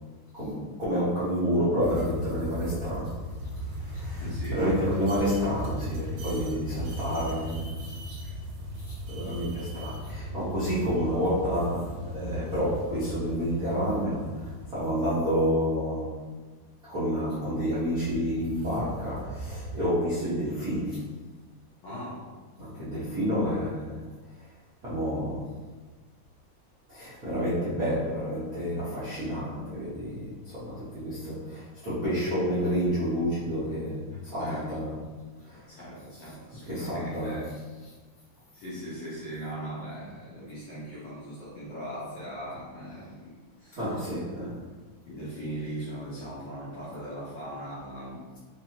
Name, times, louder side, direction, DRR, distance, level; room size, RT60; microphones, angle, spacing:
voice 1, 0.3-3.2 3.5-4.2 4.5-8.2 8.9-16.1 16.9-21.0 22.6-24.0 24.8-25.5 26.9-34.9 35.4-35.6 36.7-37.4 43.7-44.6, equal, 50° right, -13 dB, 1.0 m, -29 dB
sound 1, 1.8-15.9 17.6-19.9, right 1 dB, 80° right, 2.3 m, -37 dB
voice 2, 4.2-4.8 21.8-22.4 34.1-34.8 35.5-37.6 38.5-43.3 43.6-43.8 45.1-48.2, right 1 dB, 60° left, -9 dB, 1.7 m, -39 dB
5.2 x 2.8 x 2.9 m, 1.3 s
omnidirectional pair, 3.7 m